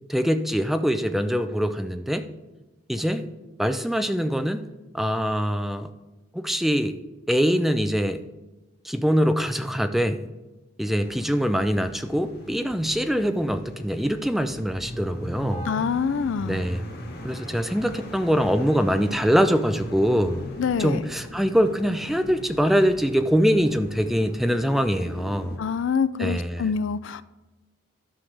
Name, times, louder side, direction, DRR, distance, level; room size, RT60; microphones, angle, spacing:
voice 1, 0.1-2.3 2.9-3.2 3.6-4.7 4.9-5.9 6.3-7.0 7.3-8.2 8.8-10.3 10.8-15.7 16.4-16.9 17.2-20.4 20.8-25.6 26.2-26.7, equal, ahead, 8 dB, 0.4 m, -23 dB
sound 1, 11.0-25.6, equal, 50° left, 1.2 m, -39 dB
voice 2, 15.7-16.6 20.6-21.0 25.6-27.2, left 6 dB, 70° left, 16 dB, 0.4 m, -25 dB
13.0 x 5.6 x 3.3 m, 1.1 s
head